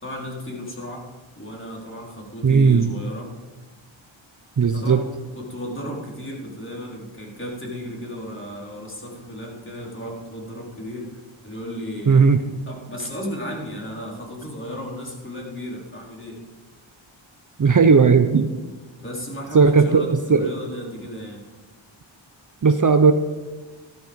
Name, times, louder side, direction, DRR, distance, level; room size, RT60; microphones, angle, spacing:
voice 1, 0.0-1.1 1.4-3.3 4.7-16.4 19.0-21.4, equal, 25° left, -2 dB, 4.2 m, -34 dB
voice 2, 2.4-2.9 4.6-5.0 12.1-12.4 17.6-18.5 19.5-20.5 22.6-23.1, right 5 dB, 40° right, 8 dB, 0.8 m, -16 dB
13.5 x 13.0 x 5.4 m, 1.3 s
wide cardioid pair, 75°, 49 cm